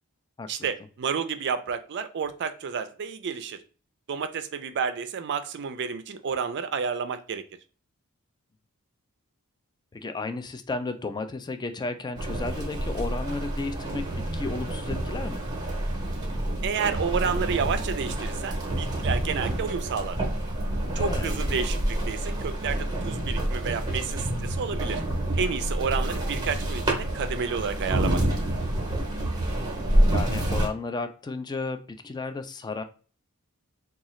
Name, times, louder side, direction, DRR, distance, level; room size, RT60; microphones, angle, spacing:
voice 1, 0.5-3.6 4.1-7.4 16.6-20.2 21.0-25.0 25.4-28.2, right 6 dB, 50° right, 9 dB, 0.4 m, -30 dB
voice 2, 9.9-15.4 21.0-21.3 30.1-32.8, left 3 dB, 20° left, 8 dB, 0.3 m, -33 dB
sound 1, 12.2-30.7, right 1 dB, 20° right, 0.8 m, -28 dB
3.7 x 2.3 x 3.0 m, 0.37 s
head